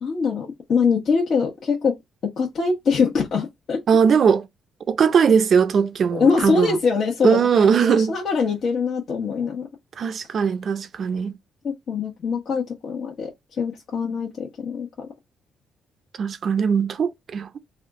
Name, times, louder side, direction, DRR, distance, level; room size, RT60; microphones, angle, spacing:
voice 1, 0.0-1.9 2.2-3.8 6.1-9.7 11.6-13.3 13.6-15.1, left 5 dB, 60° left, 1.1 m, -23 dB
voice 2, 3.9-4.5 4.9-6.8 7.2-8.1 10.0-11.4 16.2-17.6, right 6 dB, 55° right, 0.6 m, -19 dB
3.5 x 2.4 x 3.7 m
cardioid pair, 90°, 0 cm